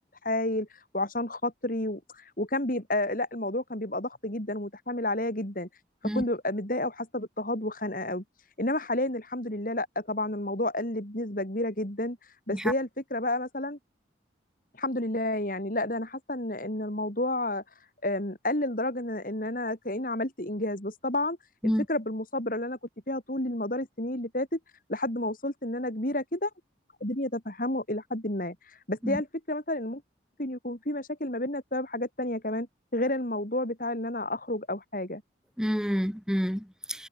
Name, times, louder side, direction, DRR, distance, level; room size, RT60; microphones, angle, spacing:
voice 1, 0.2-0.7 0.9-5.7 6.0-8.2 8.6-12.2 12.5-13.8 14.8-17.6 18.0-21.4 21.9-22.8 23.1-24.6 24.9-26.5 27.0-28.6 28.9-30.0 30.4-32.7 32.9-35.2, left 1 dB, 45° left, 4.2 m, -30 dB
voice 2, 35.6-37.1, equal, 5° right, 2.4 m, -28 dB
head